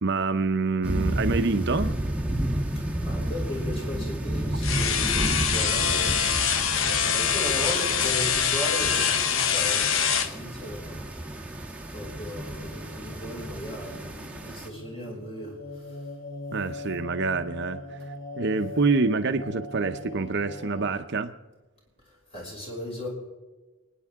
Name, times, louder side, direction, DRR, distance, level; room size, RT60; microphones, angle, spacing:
voice 1, 0.0-2.0 16.5-18.0 18.4-21.3, right 4 dB, 60° right, 8 dB, 0.8 m, -26 dB
sound 1, 0.8-14.7, right 1 dB, 5° right, 1.3 m, -31 dB
voice 2, 2.7-11.0 11.3-11.5 11.9-14.1 14.4-16.1 22.1-23.1, left 1 dB, 30° left, -3 dB, 5.7 m, -37 dB
sound 2, 4.6-10.3, left 7 dB, 80° left, 1.0 m, -24 dB
sound 3, 12.0-21.0, left 2 dB, 50° left, 2.4 m, -41 dB
29.5 x 10.0 x 3.7 m, 1.2 s
head